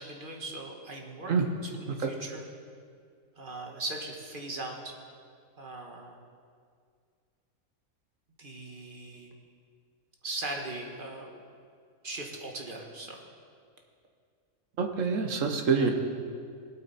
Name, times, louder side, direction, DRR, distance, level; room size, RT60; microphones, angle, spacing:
voice 1, 0.0-2.4 3.4-4.9 5.6-6.1 8.4-9.3 10.2-11.4 12.0-13.2 15.7-15.9, right 2 dB, 40° right, 1 dB, 1.7 m, -39 dB
voice 2, 14.8-15.9, right 5 dB, 65° right, 4 dB, 1.5 m, -26 dB
19.5 x 8.7 x 4.3 m, 2.2 s
omnidirectional pair, 1.4 m